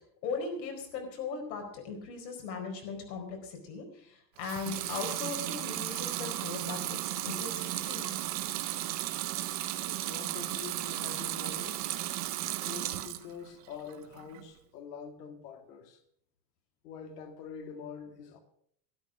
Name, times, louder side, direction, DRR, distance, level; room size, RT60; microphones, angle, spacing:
voice 1, 0.2-7.0 7.2-8.2, left 5 dB, 90° left, 4.6 m, -38 dB
Water tap faucet / Sink (filling or washing) / Liquid, 4.4-13.3 13.7-14.4, right 14 dB, 25° right, 0.4 m, -35 dB
voice 2, 9.7-11.9 12.6-16.0 16.8-18.4, left 6 dB, 70° left, 2.1 m, -45 dB
12.5 x 11.5 x 6.1 m
supercardioid pair, 175°, 49 cm